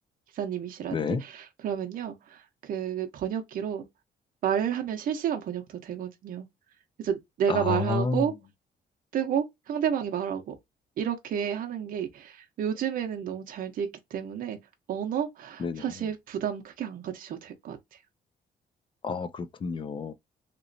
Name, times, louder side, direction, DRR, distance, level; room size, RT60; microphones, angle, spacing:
voice 1, 0.3-3.8 4.4-6.5 7.0-8.3 9.1-10.5 11.0-14.6 14.9-17.8, right 8 dB, 55° right, 0.7 m, -31 dB
voice 2, 0.9-1.2 7.5-8.2 15.6-15.8 19.0-20.1, left 5 dB, 30° left, 0.4 m, -30 dB
3.0 x 2.9 x 2.5 m
cardioid pair, 145°, 17 cm